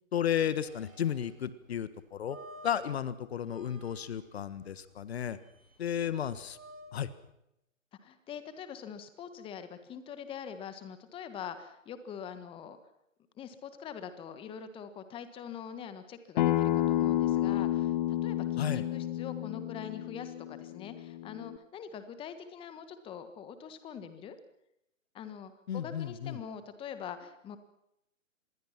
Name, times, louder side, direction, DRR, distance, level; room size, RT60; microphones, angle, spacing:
voice 1, 0.1-2.4 2.6-5.4 5.8-6.6 6.9-7.1 18.6-18.8 25.7-26.4, left 9 dB, 50° left, 15 dB, 1.5 m, -33 dB
sound 1, 0.6-7.3, equal, 85° right, 4.4 m, -54 dB
voice 2, 8.0-12.8 13.4-24.4 25.1-27.6, left 7 dB, 15° left, 11 dB, 1.5 m, -44 dB
Acoustic guitar, 16.4-21.6, left 13 dB, 35° left, 1.2 m, -30 dB
26.5 x 21.0 x 5.9 m, 0.83 s
figure-of-eight pair, 130°, 39 cm